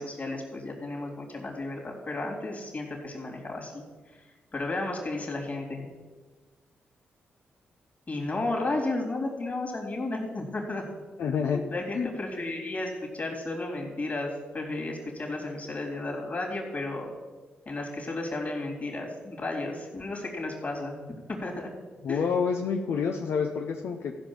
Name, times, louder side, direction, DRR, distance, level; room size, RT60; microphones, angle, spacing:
voice 1, 0.0-3.8 4.5-5.9 8.1-10.9 11.5-17.1 17.7-21.0 21.3-21.7 22.1-22.2, left 2 dB, 40° left, 1 dB, 3.5 m, -33 dB
voice 2, 11.2-11.6 11.9-12.1 22.0-24.2, left 6 dB, 75° left, 3 dB, 0.8 m, -28 dB
14.5 x 5.4 x 7.4 m, 1.3 s
cardioid pair, 70°, 4 cm